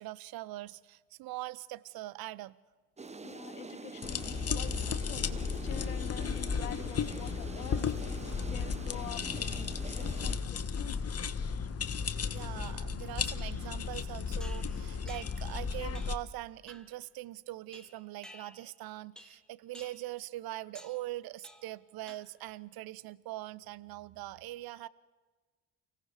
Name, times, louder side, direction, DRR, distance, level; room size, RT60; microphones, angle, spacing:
voice 1, 0.0-2.6 12.3-24.9, right 16 dB, 55° right, 20 dB, 0.8 m, -42 dB
sound 1, 3.0-10.4, right 4 dB, 15° right, 1.0 m, -45 dB
voice 2, 3.2-8.0 8.5-9.7 9.9-11.3, left 12 dB, 90° left, 17 dB, 0.8 m, -47 dB
sound 2, 4.0-16.2, left 6 dB, 35° left, 1.4 m, -34 dB
sound 3, 14.4-15.5 15.9-16.3 16.7-17.0 17.7-18.8 19.2-19.5 19.7-20.1 20.7-21.0 21.4-21.8 22.1-22.5, left 1 dB, ahead, 2.5 m, -53 dB
30.0 x 17.5 x 5.1 m, 1.3 s
hypercardioid pair, 50°, 43 cm